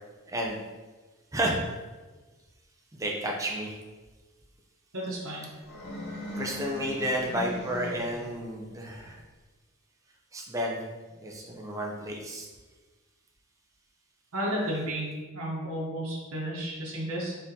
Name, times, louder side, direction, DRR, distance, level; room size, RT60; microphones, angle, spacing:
voice 1, 1.3-1.7 3.0-3.7 6.4-9.2 10.3-10.9 11.2-12.5, right 1 dB, 15° right, -1 dB, 0.5 m, -31 dB
voice 2, 4.9-5.5 14.3-17.3, right 1 dB, 70° right, -5 dB, 0.9 m, -32 dB
sound 1, 5.6-8.5, left 1 dB, 50° left, 0.7 m, -39 dB
4.1 x 3.7 x 2.7 m, 1.3 s
head